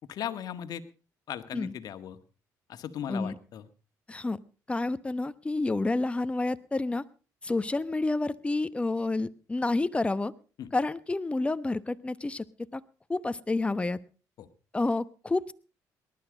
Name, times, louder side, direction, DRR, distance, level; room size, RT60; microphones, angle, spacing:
voice 1, 0.1-0.8 1.3-2.2 2.7-3.6 10.6-10.7 14.4-14.5, left 9 dB, 60° left, 10 dB, 1.7 m, -37 dB
voice 2, 4.7-7.0 7.4-10.3 10.7-12.4 12.7-12.8 13.1-14.0 14.7-15.5, left 2 dB, 15° left, 15 dB, 1.0 m, -29 dB
19.5 x 12.0 x 5.1 m, 0.37 s
cardioid pair, 85°, 7 cm